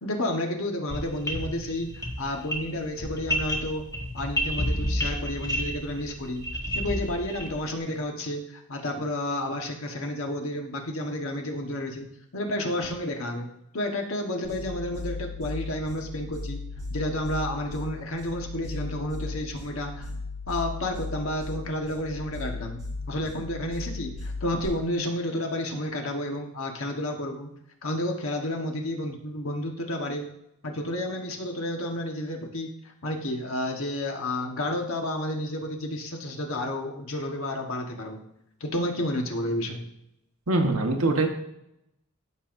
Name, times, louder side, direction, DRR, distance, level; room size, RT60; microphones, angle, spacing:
voice 1, 0.0-3.8 4.1-6.5 6.7-12.1 12.3-13.5 13.7-16.6 16.9-20.1 20.5-22.8 23.1-27.5 27.8-30.2 30.6-38.2 38.6-39.8, left 1 dB, 70° left, 2 dB, 1.3 m, -31 dB
sound 1, 0.9-7.6, equal, 15° left, 1.4 m, -31 dB
sound 2, 14.4-24.7, left 3 dB, 20° right, 3.5 m, -36 dB
voice 2, 40.5-41.3, right 2 dB, 80° right, 3 dB, 1.3 m, -23 dB
14.0 x 5.6 x 2.6 m, 0.81 s
head